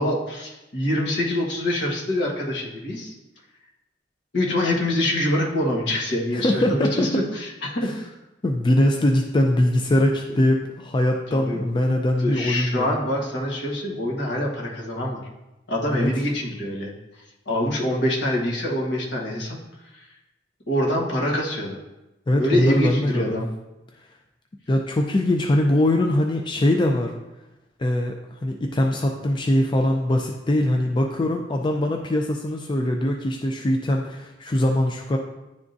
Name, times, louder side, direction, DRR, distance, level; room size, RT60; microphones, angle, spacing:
voice 1, 0.0-3.1 4.3-7.9 11.3-11.6 12.2-15.2 15.7-16.9 17.5-19.6 19.9-20.0 20.7-21.8 22.4-23.5, left 1 dB, 70° left, -2 dB, 1.4 m, -25 dB
voice 2, 6.3-7.2 7.8-8.0 8.4-13.0 15.9-16.1 22.3-23.4 24.7-27.1 27.8-35.2, left 1 dB, 25° left, 2 dB, 0.4 m, -22 dB
10.5 x 3.6 x 2.6 m, 0.99 s
head